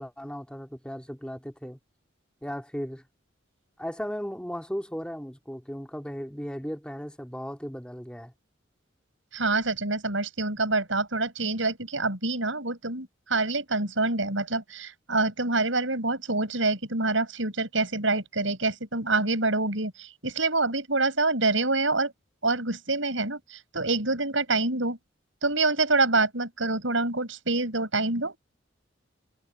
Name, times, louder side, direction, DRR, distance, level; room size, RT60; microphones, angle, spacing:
voice 1, 0.0-1.8 2.4-3.0 3.8-8.3, equal, 5° left, 2.1 m, -36 dB
voice 2, 9.3-22.1 22.4-25.0 25.4-28.4, right 3 dB, 75° right, 6.9 m, -26 dB
head